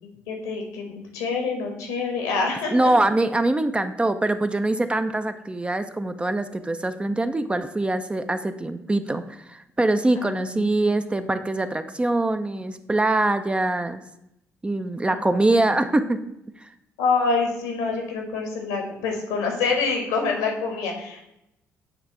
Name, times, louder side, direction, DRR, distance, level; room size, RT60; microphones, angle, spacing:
voice 1, 0.3-3.0 10.2-10.8 15.1-15.5 17.0-21.2, left 4 dB, 70° left, 2 dB, 1.3 m, -26 dB
voice 2, 2.7-14.0 14.6-16.2 16.6-16.7, right 2 dB, 15° right, 9 dB, 0.4 m, -23 dB
7.9 x 3.3 x 4.4 m, 0.84 s
figure-of-eight pair, 45°, 8 cm